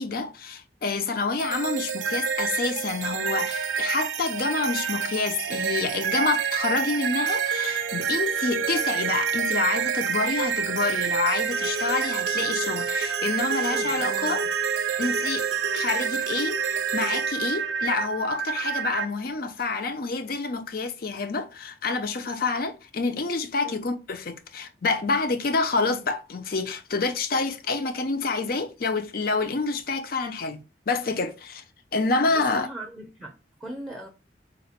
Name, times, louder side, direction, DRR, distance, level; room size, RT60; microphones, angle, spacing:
voice 1, 0.0-14.4 15.0-31.6 31.9-32.7, left 3 dB, 55° left, 0.6 m, -28 dB
sound 1, 1.4-19.1, right 7 dB, 90° right, 0.5 m, -28 dB
voice 2, 13.6-14.5 23.6-23.8 32.3-34.1, right 1 dB, 5° right, 0.7 m, -39 dB
4.1 x 2.2 x 4.2 m
head